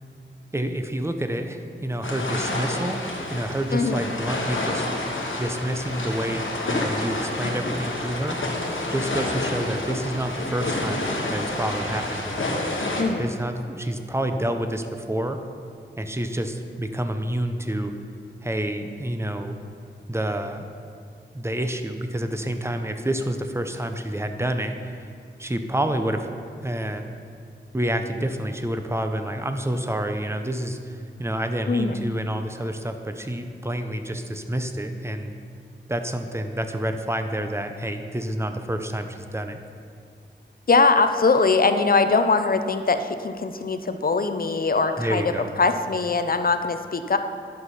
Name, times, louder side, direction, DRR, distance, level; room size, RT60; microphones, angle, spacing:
voice 1, 0.5-3.0 3.3-4.9 5.4-8.4 8.9-12.6 13.2-15.4 16.0-17.9 18.4-19.6 20.1-20.7 21.3-25.1 25.4-27.1 27.7-35.3 35.9-39.6 45.0-45.5, right 1 dB, 15° right, 6 dB, 0.7 m, -28 dB
sound 1, 2.0-13.0, left 2 dB, 90° left, 1.4 m, -29 dB
voice 2, 3.7-4.0 13.0-13.3 31.7-32.0 40.7-45.2 45.6-47.2, left 4 dB, 50° left, 8 dB, 0.6 m, -21 dB
11.0 x 6.2 x 5.6 m, 2.4 s
wide cardioid pair, 85°, 20 cm